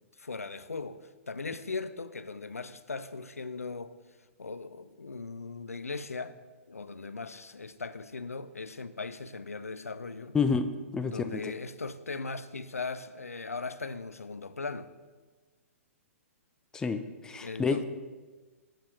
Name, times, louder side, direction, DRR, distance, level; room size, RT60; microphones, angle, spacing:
voice 1, 0.0-4.0 4.4-6.4 6.7-10.4 11.0-14.9 17.4-17.8, left 4 dB, 85° left, 0.4 m, -39 dB
voice 2, 10.3-11.4 16.7-17.8, left 5 dB, 10° left, 0.3 m, -29 dB
7.5 x 6.6 x 3.1 m
figure-of-eight pair, 120°, 8 cm